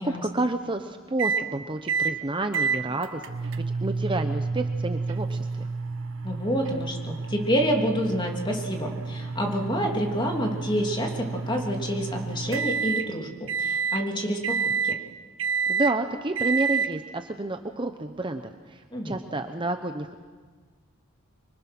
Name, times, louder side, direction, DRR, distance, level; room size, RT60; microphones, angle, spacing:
voice 1, 0.0-3.5 3.8-5.7 15.7-20.2, right 2 dB, 25° right, 7 dB, 0.9 m, -30 dB
sound 1, 1.2-1.5 1.9-2.2 2.5-13.1 13.5-14.0 14.4-15.0 15.4-16.0 16.4-16.9, right 5 dB, 65° right, 0.9 m, -29 dB
voice 2, 6.2-14.6 14.8-14.9 18.9-19.2, equal, 20° left, 1 dB, 3.0 m, -28 dB
25.0 x 24.0 x 6.1 m, 1.4 s
head